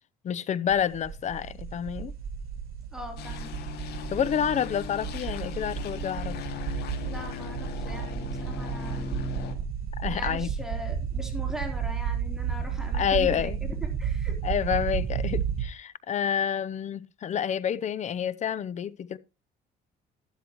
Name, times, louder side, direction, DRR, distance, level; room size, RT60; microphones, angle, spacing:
voice 1, 0.2-2.1 4.1-6.4 10.0-10.5 12.9-13.6 14.4-19.2, left 8 dB, 45° left, 0.7 m, -28 dB
sound 1, 0.7-15.6, right 7 dB, 60° right, 1.6 m, -32 dB
voice 2, 2.9-3.6 7.0-9.1 10.0-14.4, equal, 5° right, 3.7 m, -41 dB
sound 2, 3.2-9.6, left 6 dB, 75° left, 2.3 m, -38 dB
12.0 x 12.0 x 3.1 m
cardioid pair, 110°, 17 cm